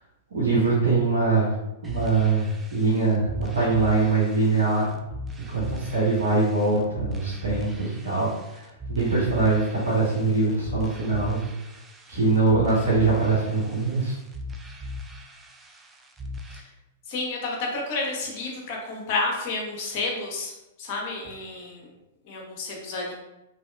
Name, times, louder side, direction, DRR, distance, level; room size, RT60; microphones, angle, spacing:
voice 1, 0.3-1.5 1.8-5.0 5.5-11.4 12.1-14.1, right 3 dB, 75° right, -7 dB, 1.0 m, -23 dB
sound 1, 1.8-16.6, left 1 dB, 15° right, 0.4 m, -39 dB
voice 2, 17.1-20.5 20.8-21.9 22.3-23.1, left 3 dB, 45° left, -1 dB, 1.0 m, -30 dB
3.2 x 2.6 x 2.3 m, 0.93 s
figure-of-eight pair, 105°, 0 cm